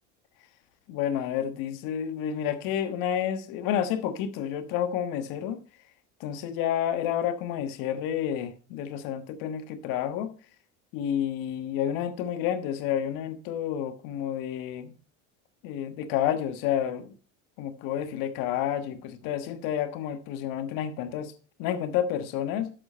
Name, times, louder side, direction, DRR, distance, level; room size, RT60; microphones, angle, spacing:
voice 1, 0.9-5.6 6.2-10.3 10.9-14.9 15.6-17.1 17.6-21.3 21.6-22.7, left 10 dB, 65° left, 1.4 m, -30 dB
11.5 x 7.9 x 4.3 m
hypercardioid pair, 95°, 37 cm